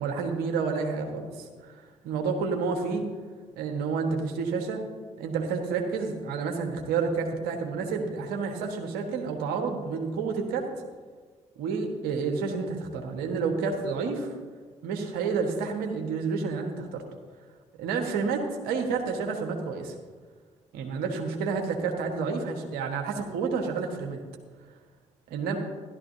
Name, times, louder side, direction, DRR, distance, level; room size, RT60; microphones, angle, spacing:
voice 1, 0.0-1.8 2.0-3.0 3.6-4.8 5.2-10.7 11.6-14.3 14.8-17.0 17.8-20.0 20.7-24.2 25.3-25.6, right 5 dB, 70° right, 3 dB, 1.5 m, -29 dB
15.5 x 12.0 x 2.8 m, 1.5 s
hypercardioid pair, 45°, 17 cm